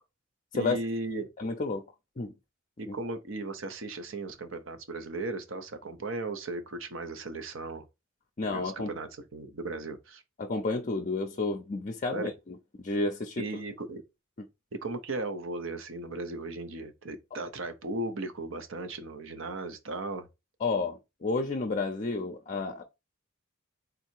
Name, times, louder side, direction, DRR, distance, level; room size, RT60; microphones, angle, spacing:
voice 1, 0.5-1.3 2.8-7.9 8.5-10.2 12.1-12.3 13.4-14.0 14.7-20.3, right 2 dB, 65° right, 0.8 m, -36 dB
voice 2, 1.4-1.8 2.2-2.3 2.9-3.0 8.4-8.9 10.4-13.4 20.6-22.8, left 3 dB, 40° left, 0.5 m, -31 dB
3.9 x 2.8 x 4.4 m
head